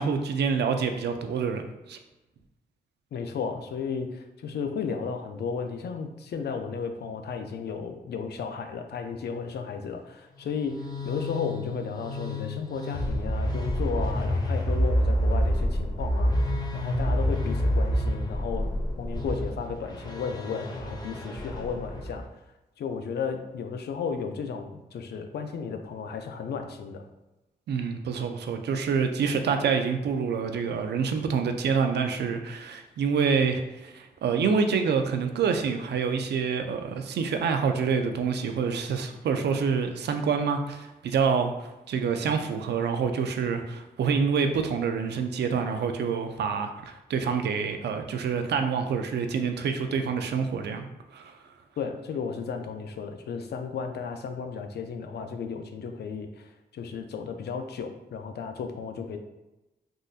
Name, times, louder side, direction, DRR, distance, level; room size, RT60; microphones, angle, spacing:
voice 1, 0.0-1.6 1.9-2.0 27.7-50.9 51.1-51.3, right 6 dB, 80° right, 6 dB, 0.4 m, -27 dB
voice 2, 3.1-18.7 19.0-22.2 22.8-27.1 51.8-59.2, left 5 dB, 75° left, 6 dB, 0.4 m, -34 dB
sound 1, 10.4-22.2, equal, 25° left, 0.6 m, -28 dB
3.6 x 2.6 x 2.4 m, 1.0 s
cardioid pair, 90°, 17 cm